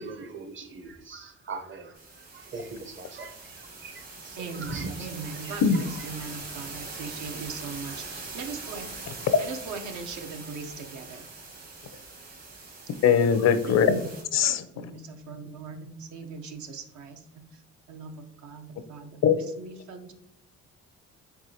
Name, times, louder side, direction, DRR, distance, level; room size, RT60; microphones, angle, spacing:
voice 1, 0.0-5.6, right 3 dB, 40° right, 8 dB, 0.7 m, -41 dB
sound 1, 1.9-14.2, right 3 dB, 55° right, 1.7 m, -42 dB
voice 2, 4.4-8.9 9.4-11.3 13.9-14.1 14.7-17.6 17.9-19.2 19.5-20.1, right 4 dB, 75° right, 5 dB, 0.7 m, -39 dB
voice 3, 13.0-14.0 14.3-14.9 19.2-19.3, left 7 dB, 60° left, 12 dB, 0.5 m, -21 dB
4.7 x 3.7 x 2.7 m, 0.83 s
cardioid pair, 90°, 30 cm